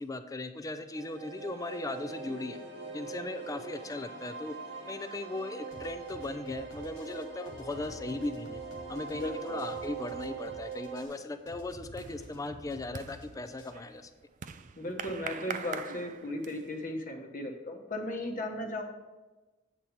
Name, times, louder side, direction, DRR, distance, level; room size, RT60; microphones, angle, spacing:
voice 1, 0.0-2.6 2.9-4.5 4.9-8.6 8.9-14.1, left 2 dB, 20° left, 9 dB, 0.4 m, -38 dB
sound 1, 0.9-11.1, right 5 dB, 70° right, 1.4 m, -42 dB
sound 2, 5.7-13.7, left 1 dB, 80° left, 1.4 m, -51 dB
voice 2, 9.1-9.6 14.8-18.9, left 1 dB, 45° left, 4 dB, 1.0 m, -36 dB
sound 3, 10.3-10.7 11.0-16.8, right 6 dB, 40° right, 0.4 m, -43 dB
8.2 x 4.4 x 5.5 m, 1.2 s
head